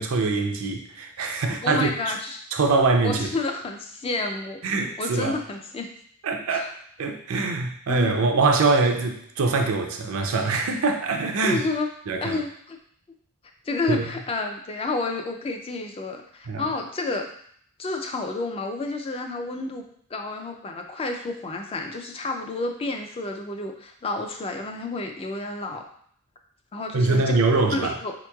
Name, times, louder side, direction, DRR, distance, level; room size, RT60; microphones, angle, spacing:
voice 1, 0.0-1.9 2.5-3.3 4.6-5.3 6.2-6.7 7.0-11.6 12.1-12.4 13.9-14.0 16.5-16.7 26.9-27.9, right 3 dB, 75° right, 4 dB, 0.5 m, -23 dB
voice 2, 1.6-2.4 3.0-4.6 5.0-5.9 6.5-6.7 7.9-8.3 11.4-11.9 12.2-12.8 13.7-17.3 17.8-19.9 20.1-25.8 26.7-28.1, left 3 dB, 25° left, 4 dB, 0.3 m, -30 dB
4.4 x 2.9 x 2.3 m, 0.64 s
head